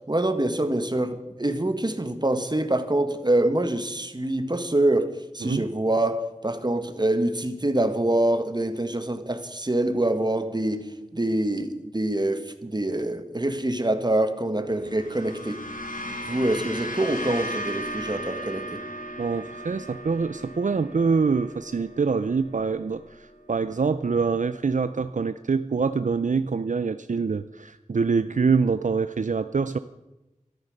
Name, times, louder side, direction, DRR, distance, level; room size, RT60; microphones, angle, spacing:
voice 1, 0.1-5.1 5.3-10.9 11.1-15.6 16.2-18.8, right 1 dB, 35° right, 9 dB, 1.6 m, -25 dB
sound 1, 14.7-23.2, equal, 85° left, 2.2 m, -36 dB
voice 2, 19.2-29.8, right 5 dB, 70° right, 12 dB, 0.5 m, -25 dB
13.5 x 13.0 x 6.5 m, 1.0 s
wide cardioid pair, 45°, 13 cm